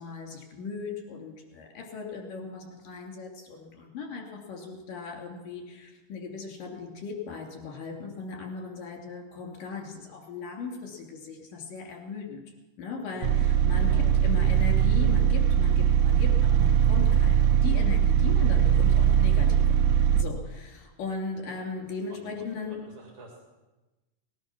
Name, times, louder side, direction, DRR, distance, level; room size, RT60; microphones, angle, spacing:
voice 1, 0.0-12.4 12.8-19.8 20.2-22.8, left 4 dB, 80° left, 1 dB, 4.4 m, -38 dB
voice 2, 13.1-13.5 13.8-14.2 21.5-21.6 22.1-22.3 22.9-23.5, right 2 dB, 45° right, 0 dB, 2.9 m, -47 dB
sound 1, 13.2-20.2, right 9 dB, 75° right, 1.6 m, -21 dB
19.0 x 11.0 x 6.0 m, 1.1 s
omnidirectional pair, 3.8 m